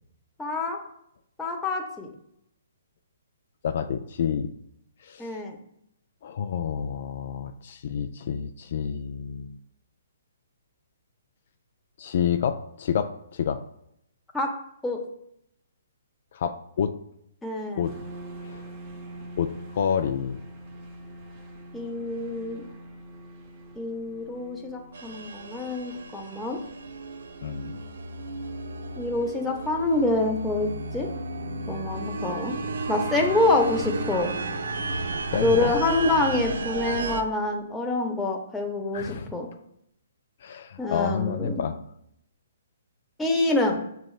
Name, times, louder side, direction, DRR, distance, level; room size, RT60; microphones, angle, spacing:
voice 1, 0.4-0.8 1.4-2.1 5.2-5.6 14.3-14.5 14.8-15.0 17.4-17.9 21.7-22.7 23.8-26.6 29.0-31.1 31.7-32.5 32.9-34.3 35.4-39.5 40.8-41.6 43.2-43.8, left 2 dB, 5° left, 0 dB, 0.7 m, -26 dB
voice 2, 3.6-4.5 5.0-5.3 6.2-9.6 12.0-13.6 16.3-16.9 17.8-17.9 18.4-18.6 19.4-20.4 27.4-27.8 35.3-35.7 38.9-39.3 40.4-41.7, left 7 dB, 55° left, 7 dB, 0.3 m, -29 dB
sound 1, 17.8-27.7, right 1 dB, 30° right, 0.8 m, -44 dB
sound 2, 24.9-37.2, right 3 dB, 75° right, 0.5 m, -33 dB
6.0 x 3.2 x 2.4 m, 0.75 s
hypercardioid pair, 140°, 0 cm